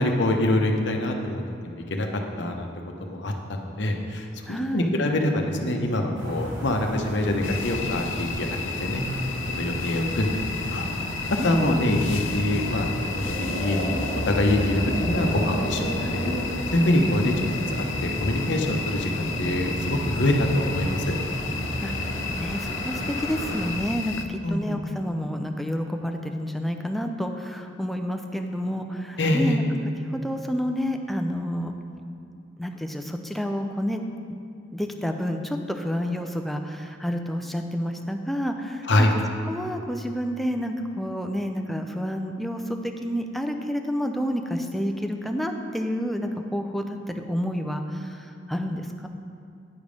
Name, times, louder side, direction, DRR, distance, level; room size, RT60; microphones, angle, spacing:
voice 1, 0.0-2.1 2.4-2.7 3.0-8.5 8.8-10.9 11.3-13.9 14.2-16.3 16.7-17.3 17.7-21.1 24.4-24.8 29.2-29.6 38.9-39.1, left 1 dB, 65° left, 3 dB, 0.9 m, -25 dB
voice 2, 4.5-4.9 11.4-12.0 21.8-29.6 30.0-31.7 32.6-34.0 34.7-39.1 39.4-49.1, equal, ahead, 4 dB, 0.4 m, -29 dB
sound 1, 6.2-23.7, equal, 60° right, 2.1 m, -32 dB
sound 2, 7.4-24.2, left 5 dB, 85° left, 0.5 m, -33 dB
9.6 x 5.2 x 5.2 m, 2.4 s
head